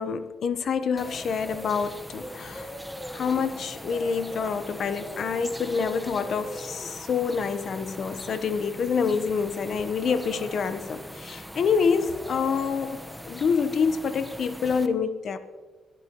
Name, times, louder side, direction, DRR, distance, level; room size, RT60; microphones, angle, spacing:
voice 1, 0.0-2.7 3.1-15.4, left 6 dB, 65° left, 11 dB, 1.0 m, -27 dB
sound 1, 1.0-14.9, equal, ahead, 1.1 m, -40 dB
22.5 x 12.0 x 3.1 m, 1.3 s
cardioid pair, 70°, 0 cm